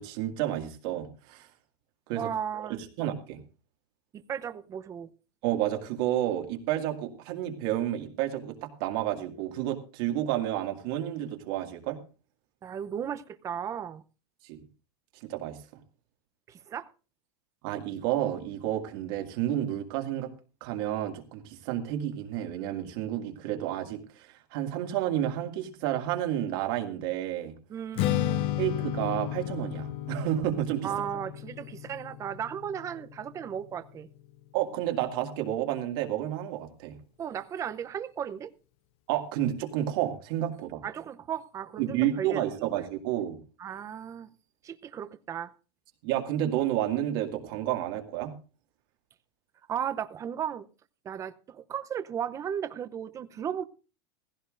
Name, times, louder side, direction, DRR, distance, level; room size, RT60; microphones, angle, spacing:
voice 1, 0.0-1.5 2.1-2.3 2.7-3.4 5.4-12.0 14.4-14.6 15.2-15.6 17.6-20.3 20.6-27.6 28.6-30.9 34.5-37.0 39.1-40.8 41.8-43.4 46.0-48.3, right 12 dB, 60° right, 2.1 m, -30 dB
voice 2, 2.1-2.8 4.1-5.1 12.6-14.0 16.5-16.9 27.7-28.5 30.8-34.1 37.2-38.5 40.8-42.7 43.6-44.3 44.6-45.5 49.7-50.6 51.0-53.6, right 8 dB, 25° right, 0.7 m, -35 dB
Strum, 28.0-34.3, left 14 dB, 45° left, 0.5 m, -33 dB
16.0 x 16.0 x 2.5 m
supercardioid pair, 145°, 14 cm